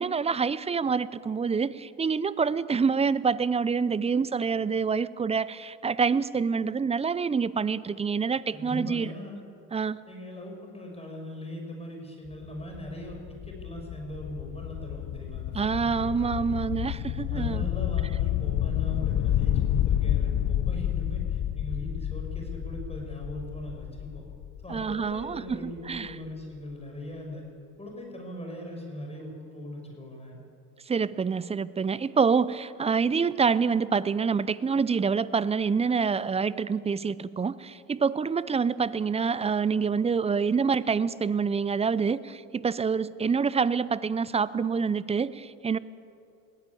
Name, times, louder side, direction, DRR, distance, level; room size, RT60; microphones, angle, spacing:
voice 1, 0.0-9.1 9.7-10.0 15.5-17.7 24.7-26.2 30.9-45.8, right 5 dB, 15° right, 18 dB, 0.6 m, -26 dB
voice 2, 8.5-9.4 10.1-16.8 17.3-24.2 24.6-27.4 27.8-30.4, left 1 dB, 15° left, 1 dB, 6.5 m, -40 dB
sound 1, 12.3-26.0, left 12 dB, 40° left, 1.1 m, -30 dB
21.0 x 16.5 x 8.6 m, 2.5 s
hypercardioid pair, 75°, 45 cm